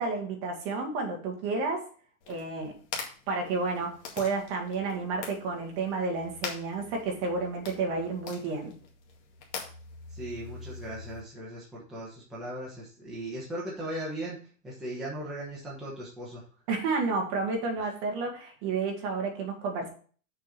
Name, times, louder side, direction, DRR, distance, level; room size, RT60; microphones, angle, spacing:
voice 1, 0.0-1.9 2.3-2.7 3.3-8.7 16.7-19.9, right 4 dB, 25° right, 1 dB, 1.5 m, -31 dB
sound 1, 2.2-11.2, left 5 dB, 50° left, 2.1 m, -43 dB
voice 2, 10.1-16.4 17.8-17.9, right 1 dB, ahead, -8 dB, 1.1 m, -38 dB
6.6 x 4.5 x 6.6 m, 0.43 s
supercardioid pair, 175°, 42 cm